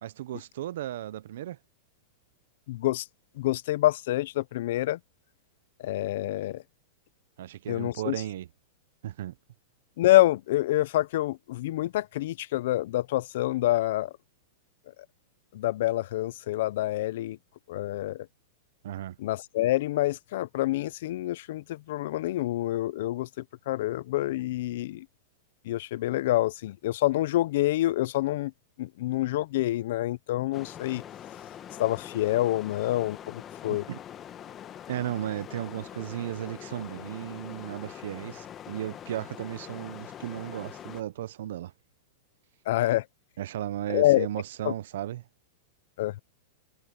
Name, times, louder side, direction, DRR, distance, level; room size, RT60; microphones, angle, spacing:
voice 1, 0.0-1.6 7.4-8.5 9.0-9.3 18.8-19.2 33.7-34.0 34.9-41.7 43.4-45.2, right 12 dB, 65° right, 0.6 m, -35 dB
voice 2, 2.7-3.0 3.4-5.0 5.8-6.6 7.7-8.1 10.0-14.1 15.5-17.4 17.7-18.3 19.2-25.1 25.7-28.5 28.8-31.0 31.8-33.8 42.7-43.0 43.9-44.3 44.6-44.7 46.0-46.2, left 15 dB, 55° left, 0.5 m, -27 dB
sound 1, 30.5-41.0, left 10 dB, 20° left, 0.9 m, -44 dB
supercardioid pair, 165°, 0 cm